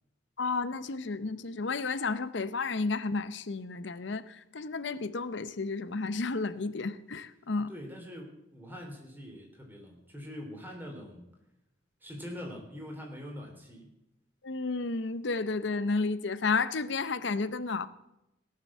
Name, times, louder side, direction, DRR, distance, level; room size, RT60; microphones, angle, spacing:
voice 1, 0.4-7.7 14.4-17.9, left 4 dB, 65° left, 0.7 m, -32 dB
voice 2, 7.7-11.3 12.0-13.9, equal, 10° right, 3.2 m, -43 dB
17.5 x 6.7 x 7.3 m
head